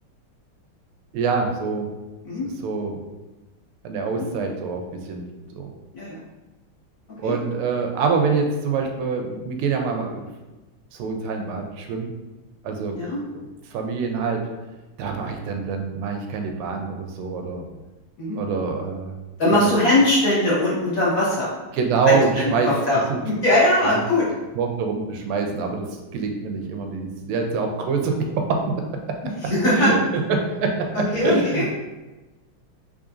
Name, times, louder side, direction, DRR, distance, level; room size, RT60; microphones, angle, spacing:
voice 1, 1.1-1.9 2.4-3.0 3.8-4.8 5.1-5.2 5.5-5.7 7.2-10.2 10.9-12.1 12.6-13.0 13.3-13.4 13.7-14.5 15.0-17.7 18.3-19.1 19.5-19.7 21.7-22.7 23.1-23.2 23.8-24.0 24.5-29.2 29.4-30.0 30.3-31.7, right 4 dB, 90° right, 3 dB, 1.5 m, -25 dB
voice 2, 19.4-21.5 22.1-23.0 23.2-24.3 29.4-29.9 30.9-31.6, left 1 dB, 45° left, -7 dB, 1.4 m, -20 dB
3.7 x 3.3 x 2.5 m, 1.1 s
omnidirectional pair, 2.4 m